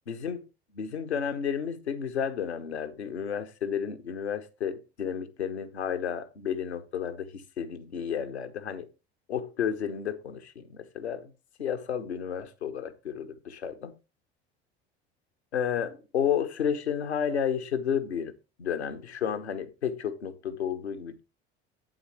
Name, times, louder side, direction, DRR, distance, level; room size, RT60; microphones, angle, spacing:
voice 1, 0.1-0.5 0.7-8.9 9.3-11.3 11.6-13.9 15.5-21.2, left 8 dB, 85° left, 1.0 m, -32 dB
8.8 x 7.9 x 3.0 m
figure-of-eight pair, 65°, 32 cm